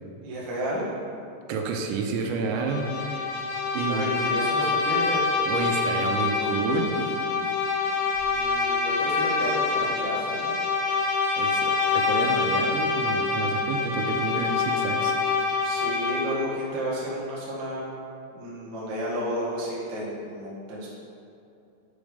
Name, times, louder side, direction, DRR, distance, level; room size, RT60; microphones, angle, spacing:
voice 1, 0.2-0.9 3.9-5.2 8.2-10.5 15.6-17.8 18.3-20.9, equal, 60° right, -7 dB, 1.1 m, -32 dB
voice 2, 1.5-3.3 3.7-4.2 5.5-7.0 11.4-15.1, right 4 dB, 90° right, 2 dB, 3.0 m, -29 dB
Bowed string instrument, 2.6-16.5, left 4 dB, 80° left, 3.0 m, -26 dB
8.6 x 5.3 x 5.1 m, 2.6 s
omnidirectional pair, 5.3 m